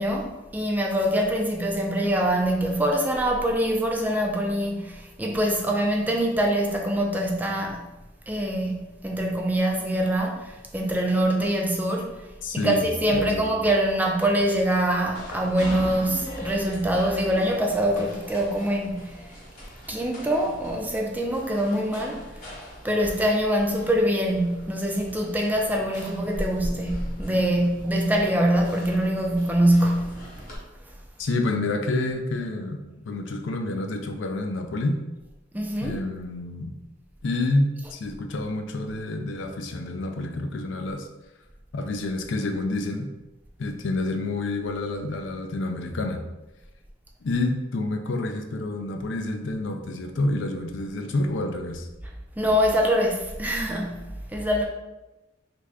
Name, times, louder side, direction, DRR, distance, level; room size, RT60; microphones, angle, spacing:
voice 1, 0.0-7.9 8.3-12.2 12.5-19.3 19.9-22.4 22.8-30.2 35.5-36.0 52.4-54.7, right 1 dB, 10° right, 0 dB, 0.3 m, -24 dB
voice 2, 12.4-12.9 13.1-13.4 31.2-32.8 33.0-35.0 35.8-36.7 37.2-41.1 41.7-43.1 43.6-46.2 47.2-51.9, left 2 dB, 70° left, 4 dB, 0.4 m, -28 dB
sound 1, 15.1-30.6, equal, 40° left, 1.0 m, -39 dB
3.2 x 2.5 x 3.4 m, 1.0 s
head